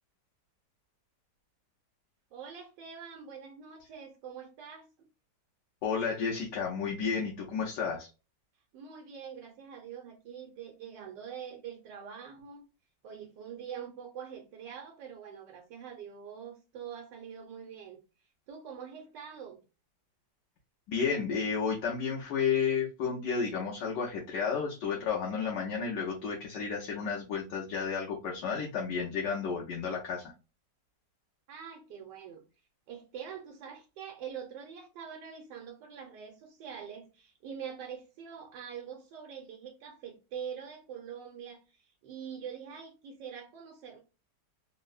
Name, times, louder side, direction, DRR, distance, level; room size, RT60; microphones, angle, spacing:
voice 1, 2.3-5.1 8.7-12.6 13.0-18.0 18.5-19.6 31.5-32.4 32.9-44.0, right 7 dB, 85° right, 1.3 m, -44 dB
voice 2, 5.8-8.1 20.9-30.3, left 6 dB, 75° left, 1.4 m, -32 dB
3.6 x 2.0 x 2.4 m
omnidirectional pair, 1.9 m